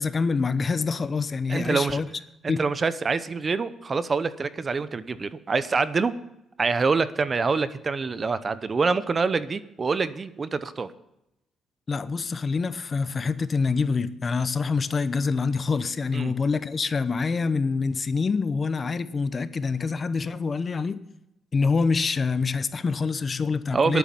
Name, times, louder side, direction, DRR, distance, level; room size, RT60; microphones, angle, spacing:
voice 1, 0.0-2.1 2.5-2.6 11.9-21.0 21.5-24.0, left 4 dB, 35° left, 0.8 m, -26 dB
voice 2, 1.5-2.0 2.4-6.1 6.6-10.9 16.1-16.3 23.7-24.0, right 4 dB, 35° right, 0.8 m, -25 dB
11.5 x 9.2 x 7.1 m
cardioid pair, 90°, 0 cm